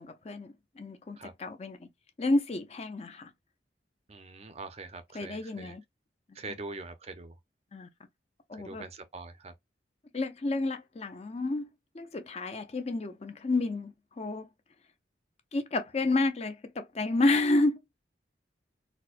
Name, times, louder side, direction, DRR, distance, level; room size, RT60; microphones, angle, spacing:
voice 1, 0.0-1.9 2.2-3.3 5.1-5.8 7.7-7.9 8.5-8.9 10.1-11.7 11.9-14.5 15.5-17.8, left 2 dB, 35° left, 0.5 m, -30 dB
voice 2, 4.1-5.8 6.3-7.4 8.5-9.5, right 3 dB, 35° right, 0.5 m, -43 dB
4.3 x 2.1 x 2.4 m
head